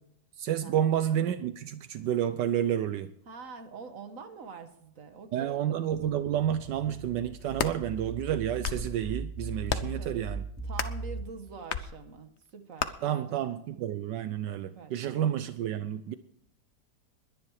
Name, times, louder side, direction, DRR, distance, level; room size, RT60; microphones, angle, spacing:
voice 1, 0.4-3.1 5.3-10.4 13.0-16.1, right 10 dB, 80° right, 11 dB, 1.3 m, -30 dB
voice 2, 3.3-5.6 9.7-10.3 10.6-13.6 14.6-15.2, right 4 dB, 50° right, 8 dB, 1.8 m, -45 dB
sound 1, 6.2-11.2, right 3 dB, 5° right, 4.5 m, -39 dB
Pops from popping air pouches, 7.3-7.8 8.4-8.9 9.7-10.0 10.7-11.0 11.7-11.9 12.8-12.9, left 7 dB, 50° left, 0.9 m, -32 dB
21.0 x 10.5 x 4.8 m, 0.73 s
omnidirectional pair, 1.9 m